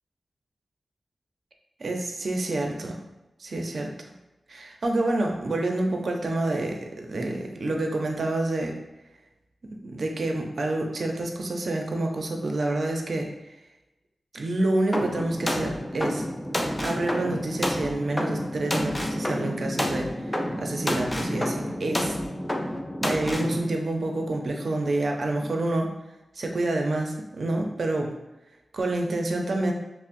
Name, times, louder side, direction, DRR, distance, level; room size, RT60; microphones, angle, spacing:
voice 1, 1.8-3.0 3.4-3.9 4.5-8.8 9.8-13.3 14.3-16.2 16.8-20.2 20.6-22.2 23.0-25.9 26.4-28.1 28.7-29.7, right 2 dB, 70° right, 2 dB, 0.5 m, -28 dB
sound 1, 14.9-23.6, left 1 dB, 20° left, 0.5 m, -29 dB
5.5 x 2.1 x 2.5 m, 1.0 s
cardioid pair, 45°, 0 cm